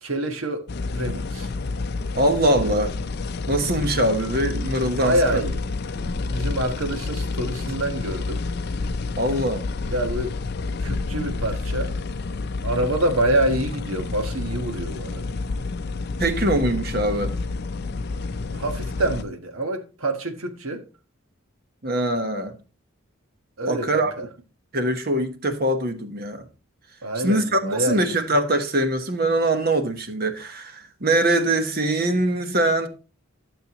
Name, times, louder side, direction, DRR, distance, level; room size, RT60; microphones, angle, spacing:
voice 1, 0.0-1.5 5.0-8.4 9.9-10.4 10.8-11.9 12.6-15.2 18.5-20.8 23.6-24.3 27.0-28.1, right 1 dB, 90° right, 1.4 m, -26 dB
sound 1, 0.7-19.2, left 3 dB, 50° left, 0.5 m, -29 dB
voice 2, 2.1-2.9 3.5-5.4 9.2-9.6 16.2-17.3 21.8-22.5 23.7-24.1 24.7-26.5 27.2-32.9, right 1 dB, 50° right, 1.1 m, -22 dB
12.5 x 6.8 x 3.0 m
head